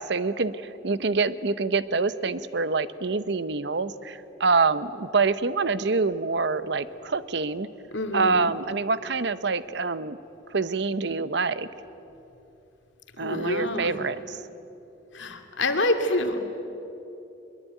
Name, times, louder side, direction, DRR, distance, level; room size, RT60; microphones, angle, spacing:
voice 1, 0.0-7.7 8.1-10.2 10.5-11.7 13.2-14.4, right 4 dB, 65° right, 14 dB, 0.8 m, -26 dB
voice 2, 7.9-8.4 13.2-13.9 15.1-16.4, left 1 dB, 85° left, 6 dB, 2.3 m, -26 dB
22.5 x 22.0 x 9.3 m, 2.9 s
head